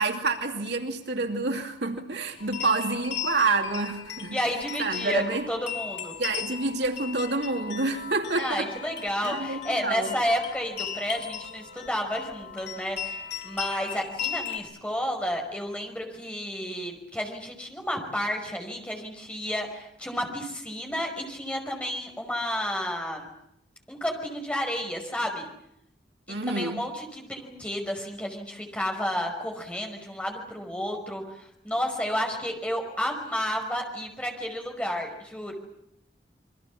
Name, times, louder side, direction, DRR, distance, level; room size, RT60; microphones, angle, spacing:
voice 1, 0.0-4.4 4.8-5.5 6.2-8.7 9.2-10.2 26.3-26.8, right 3 dB, 80° right, 4 dB, 2.7 m, -28 dB
sound 1, 2.4-14.6, left 8 dB, 80° left, 6.4 m, -37 dB
voice 2, 4.3-6.1 8.4-23.3 23.9-25.5 26.3-35.5, equal, 5° left, 2 dB, 5.4 m, -31 dB
28.0 x 23.0 x 7.4 m, 0.78 s
head